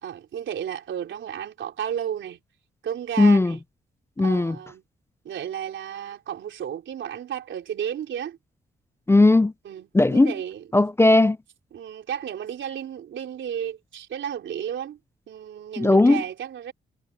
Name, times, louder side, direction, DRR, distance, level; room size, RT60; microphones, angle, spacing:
voice 1, 0.0-2.4 2.8-3.6 4.2-4.8 5.2-8.4 9.6-10.7 11.7-15.0 15.3-16.7, right 9 dB, 75° right, 3.6 m, -33 dB
voice 2, 3.2-3.5 4.2-4.6 9.1-9.5 9.9-10.3 10.7-11.4 15.8-16.2, left 2 dB, 15° left, 0.4 m, -17 dB
supercardioid pair, 55°, 20 cm